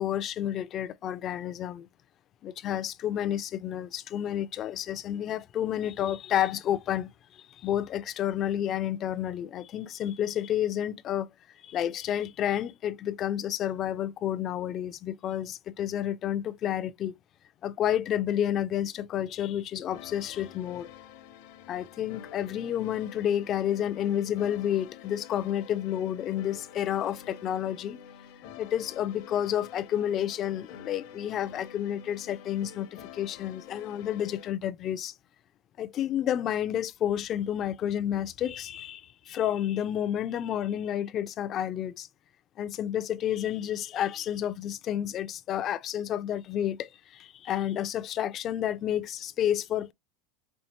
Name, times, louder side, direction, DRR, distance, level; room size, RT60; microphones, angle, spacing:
voice 1, 0.0-1.9 2.4-7.1 7.4-11.3 11.6-17.2 17.6-20.9 21.7-28.0 28.6-35.1 35.8-42.1 42.6-49.9, left 10 dB, 35° left, 0.3 m, -30 dB
sound 1, 19.9-34.5, left 9 dB, 60° left, 0.6 m, -48 dB
4.4 x 2.7 x 2.9 m
supercardioid pair, 155°, 0 cm